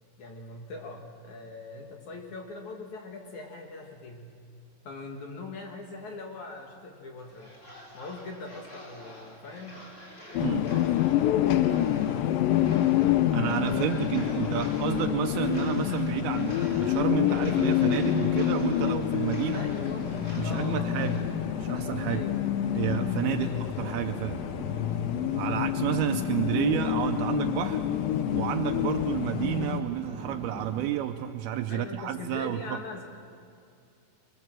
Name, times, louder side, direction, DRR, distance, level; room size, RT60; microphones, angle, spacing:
voice 1, 0.2-4.3 4.8-7.5 7.9-9.8 10.2-11.1 11.4-12.4 13.6-14.0 14.3-14.4 19.5-21.1 22.1-22.4 23.4-23.7 25.5-25.7 31.7-33.1, left 3 dB, 55° left, 2 dB, 2.7 m, -42 dB
sound 1, 7.2-21.2, equal, 20° left, 4.1 m, -47 dB
sound 2, 10.3-29.8, left 12 dB, 75° left, 2.2 m, -27 dB
voice 2, 10.4-10.7 13.3-19.7 20.4-21.2 21.6-22.2 22.7-24.4 25.4-27.8 28.3-32.8, right 12 dB, 80° right, 6 dB, 2.6 m, -30 dB
sound 3, 16.4-30.9, right 2 dB, 5° right, 0.8 m, -41 dB
23.5 x 23.0 x 7.5 m, 2.4 s
omnidirectional pair, 4.5 m